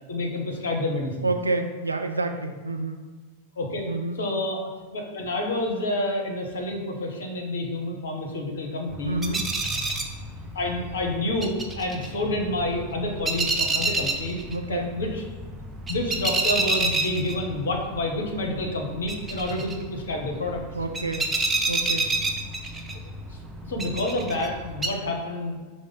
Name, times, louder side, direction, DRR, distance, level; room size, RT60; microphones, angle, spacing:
voice 1, 0.1-1.3 3.6-3.9 4.2-4.6 4.9-9.2 10.5-14.4 14.7-15.2 15.9-20.6 23.3-23.4 23.7-25.6, left 1 dB, 65° left, 1 dB, 0.7 m, -28 dB
voice 2, 1.2-3.0 3.9-4.2 9.0-9.4 14.5-14.9 20.7-21.3 21.7-22.1, right 2 dB, 80° right, 5 dB, 0.3 m, -28 dB
sound 1, 8.9-24.9, right 3 dB, 15° right, 0.4 m, -30 dB
4.7 x 2.1 x 3.8 m, 1.4 s
figure-of-eight pair, 90°, 0 cm